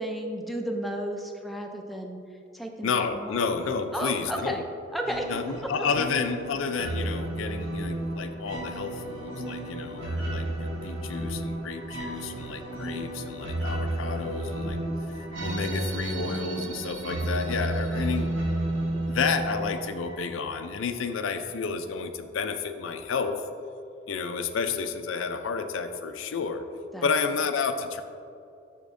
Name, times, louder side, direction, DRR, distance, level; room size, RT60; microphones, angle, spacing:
voice 1, 0.0-2.2 2.5-3.4 3.9-4.6 4.9-5.3 26.9-27.1, right 1 dB, ahead, 2 dB, 0.4 m, -33 dB
voice 2, 2.8-4.6 5.3-14.8 15.4-18.3 18.8-23.4 24.1-26.6 27.0-28.0, left 5 dB, 80° left, 7 dB, 0.4 m, -31 dB
sound 1, 5.0-20.5, right 1 dB, 90° right, 1.4 m, -32 dB
sound 2, 15.3-20.2, right 6 dB, 65° right, 0.5 m, -42 dB
6.7 x 6.4 x 2.6 m, 2.5 s
head